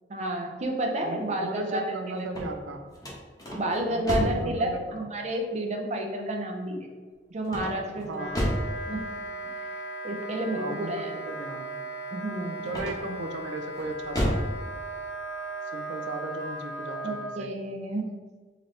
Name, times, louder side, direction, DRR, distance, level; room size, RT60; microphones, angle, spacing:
voice 1, 0.1-1.8 2.1-2.3 3.5-6.9 7.3-8.2 8.9-9.0 10.0-11.1 12.1-12.7 17.0-18.0, right 1 dB, 40° right, 2 dB, 0.5 m, -30 dB
voice 2, 1.0-2.9 3.9-5.2 8.0-8.6 10.5-11.7 12.6-14.4 15.7-17.5, right 2 dB, 90° right, 5 dB, 0.4 m, -37 dB
sound 1, 2.2-4.5 7.4-8.7 12.6-13.2 13.7-14.5, equal, 20° left, 0.9 m, -30 dB
Wind instrument woodwind instrument, 8.1-17.4, right 1 dB, 90° left, 0.5 m, -37 dB
3.8 x 2.9 x 3.1 m, 1.4 s
head